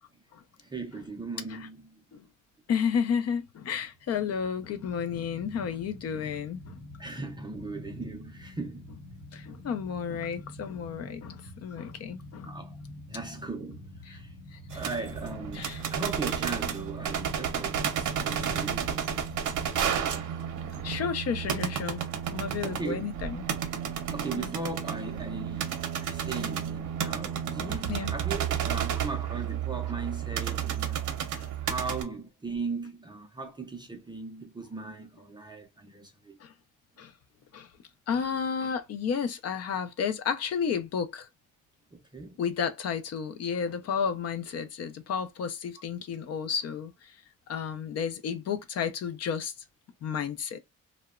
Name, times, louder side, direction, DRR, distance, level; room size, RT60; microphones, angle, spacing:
voice 1, 0.6-2.0 7.0-8.9 10.9-11.0 12.4-12.8 13.1-14.3 14.7-19.6 20.1-20.4 22.6-23.0 24.1-31.1 31.6-36.4 41.9-42.4, right 3 dB, 15° right, 0.4 m, -38 dB
voice 2, 2.7-6.8 9.3-12.5 14.1-14.2 14.5-14.6 15.5-15.8 18.3-18.4 20.8-23.4 24.4-24.5 27.9-28.1 31.4-31.5 36.4-36.5 37.0-37.1 37.5-37.7 38.1-41.3 42.4-47.2 47.5-49.5 50.0-50.6, left 7 dB, 50° left, 0.4 m, -32 dB
sound 1, 3.9-20.1, left 1 dB, 70° left, 0.8 m, -46 dB
sound 2, 14.7-32.0, right 8 dB, 70° right, 0.6 m, -32 dB
2.8 x 2.1 x 2.3 m
cardioid pair, 175°, 31 cm